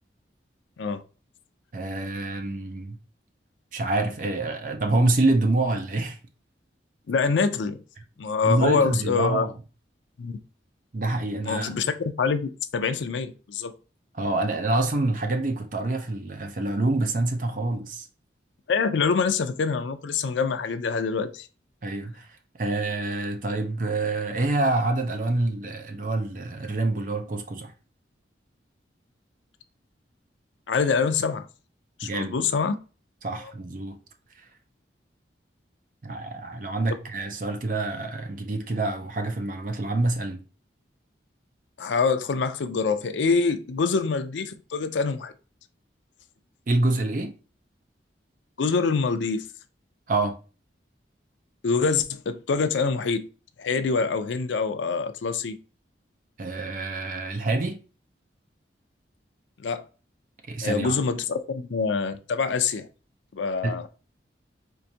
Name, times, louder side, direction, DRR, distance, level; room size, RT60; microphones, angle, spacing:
voice 1, 1.7-3.0 3.7-6.2 8.4-9.5 10.9-11.7 14.1-18.1 21.8-22.3 22.6-27.7 32.0-32.4 33.2-34.0 36.0-40.4 46.7-47.3 50.1-50.4 56.4-57.8 60.5-61.0 63.6-63.8, right 2 dB, 45° right, 0.5 m, -26 dB
voice 2, 7.1-7.8 8.2-9.4 10.2-10.3 11.4-11.8 12.2-13.7 18.7-21.5 30.7-31.5 32.0-32.8 33.4-33.5 41.8-45.3 48.6-49.5 51.6-53.3 53.6-55.6 59.6-59.8 60.6-62.9 63.3-63.9, left 5 dB, 80° left, 0.4 m, -25 dB
4.6 x 2.5 x 2.7 m
head